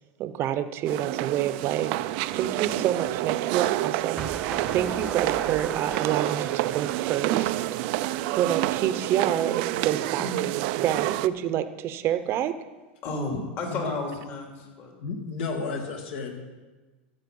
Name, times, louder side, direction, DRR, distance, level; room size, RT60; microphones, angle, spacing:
voice 1, 0.2-1.9 2.3-4.3 4.7-7.6 8.0-8.1 8.4-10.3 10.8-12.5, right 11 dB, 40° right, 12 dB, 0.8 m, -28 dB
sound 1, 0.8-11.3, right 16 dB, 60° right, 0.4 m, -28 dB
sound 2, 4.2-9.1, right 4 dB, 10° right, 0.5 m, -40 dB
voice 2, 13.0-14.9, left 2 dB, 45° left, 1 dB, 2.8 m, -32 dB
voice 3, 15.0-16.4, left 4 dB, 70° left, 2 dB, 2.4 m, -32 dB
14.0 x 7.7 x 5.5 m, 1.2 s
hypercardioid pair, 115°, 6 cm